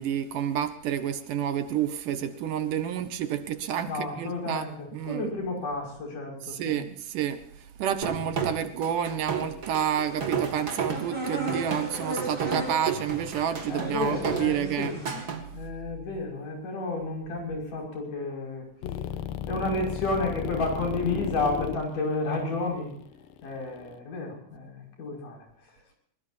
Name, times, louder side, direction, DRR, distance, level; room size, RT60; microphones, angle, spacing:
voice 1, 0.0-5.3 6.4-7.4 7.8-14.9, right 9 dB, 70° right, 10 dB, 2.6 m, -29 dB
voice 2, 3.9-6.8 13.7-15.0 15.5-18.6 19.5-22.9 23.4-25.5, left 2 dB, 65° left, 0 dB, 7.3 m, -31 dB
sound 1, 8.0-15.4, right 6 dB, 35° right, 2.2 m, -32 dB
sound 2, 10.0-15.2, right 2 dB, 15° right, 5.6 m, -37 dB
sound 3, 18.8-24.0, left 10 dB, 90° left, 2.7 m, -35 dB
22.0 x 20.5 x 2.7 m, 0.68 s
omnidirectional pair, 4.0 m